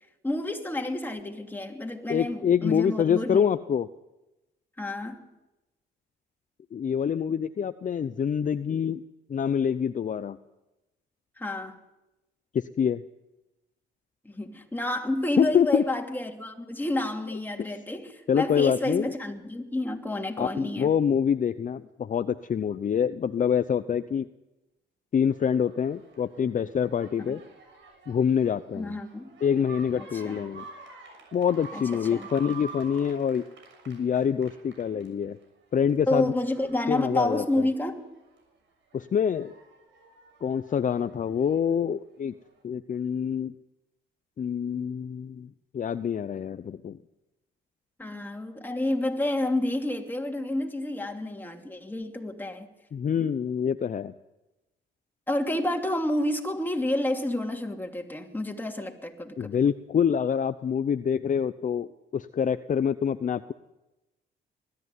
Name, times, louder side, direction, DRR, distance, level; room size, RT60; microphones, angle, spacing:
voice 1, 0.2-3.5 4.8-5.3 11.4-11.8 14.2-20.9 27.3-27.4 28.7-29.3 30.0-30.5 31.7-32.3 36.1-38.0 48.0-52.7 55.3-59.5, left 1 dB, 10° left, 2.8 m, -30 dB
voice 2, 2.1-3.9 6.7-9.0 9.3-10.4 12.5-13.0 15.4-15.8 18.3-19.1 20.4-24.3 25.1-27.4 28.1-28.9 29.4-30.7 31.3-33.4 33.9-35.4 35.7-36.3 36.9-37.7 38.9-39.6 40.4-42.3 42.6-43.5 44.4-45.5 45.7-47.0 52.9-54.1 59.4-63.5, left 7 dB, 40° left, 0.7 m, -26 dB
sound 1, 25.3-35.5 35.9-38.4 38.9-41.7 42.6-42.7, right 4 dB, 75° right, 6.7 m, -48 dB
21.0 x 13.5 x 9.7 m
cardioid pair, 90°, 20 cm